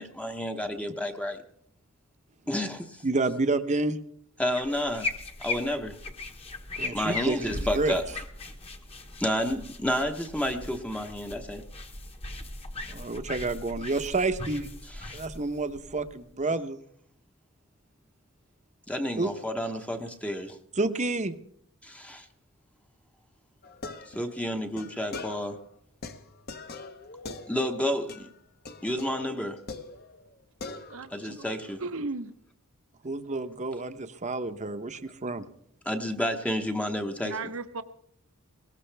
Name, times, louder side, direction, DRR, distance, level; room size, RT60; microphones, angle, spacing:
voice 1, 0.0-1.4 2.5-3.0 4.4-5.1 5.4-5.9 6.9-8.0 9.2-11.6 14.9-15.2 18.9-20.6 21.8-22.3 24.1-25.6 27.5-28.3 28.8-29.6 31.1-31.8 35.9-37.3, equal, 5° left, 5 dB, 0.9 m, -30 dB
voice 2, 3.0-4.0 6.8-7.9 12.9-14.7 15.1-16.8 19.2-19.3 20.8-21.3 33.0-35.5, right 3 dB, 35° right, 10 dB, 0.9 m, -29 dB
sound 1, 4.5-16.4, left 3 dB, 25° left, 1.3 m, -39 dB
sound 2, 23.6-25.7 26.0-27.8 28.1-28.4 28.7-30.3 30.6-31.2, left 3 dB, 45° left, 1.1 m, -42 dB
voice 3, 30.9-32.3 37.2-37.8, right 3 dB, 65° right, 11 dB, 0.9 m, -36 dB
21.0 x 18.5 x 3.4 m, 0.68 s
head